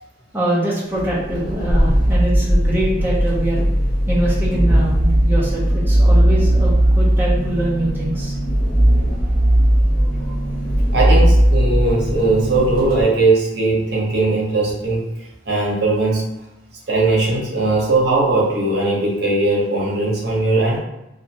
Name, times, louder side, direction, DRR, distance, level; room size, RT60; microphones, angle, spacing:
voice 1, 0.3-3.6 4.1-8.4, right 1 dB, 10° right, -7 dB, 0.5 m, -23 dB
sound 1, 0.9-13.0, right 1 dB, 50° left, 0.8 m, -17 dB
voice 2, 10.0-10.3 10.9-15.0 15.5-16.3 16.9-20.8, right 2 dB, 70° right, -4 dB, 0.8 m, -19 dB
2.5 x 2.1 x 2.7 m, 0.90 s
head